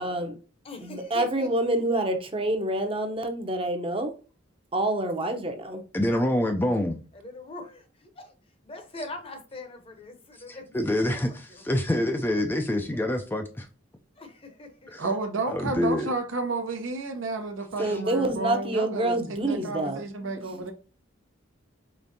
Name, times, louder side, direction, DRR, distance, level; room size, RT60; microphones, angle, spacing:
voice 1, 0.0-0.3 0.8-4.1 4.7-5.8 17.8-20.0, right 1 dB, 25° right, 0.7 m, -27 dB
voice 2, 0.6-1.5 7.1-8.3 8.6-11.8 14.2-15.0, left 2 dB, 30° left, 0.8 m, -43 dB
voice 3, 5.9-7.0 10.7-13.7 14.9-15.0 15.5-16.1 17.8-17.9, left 1 dB, 10° left, 0.3 m, -26 dB
voice 4, 15.0-20.7, right 3 dB, 85° right, 0.8 m, -31 dB
5.0 x 3.5 x 2.7 m
head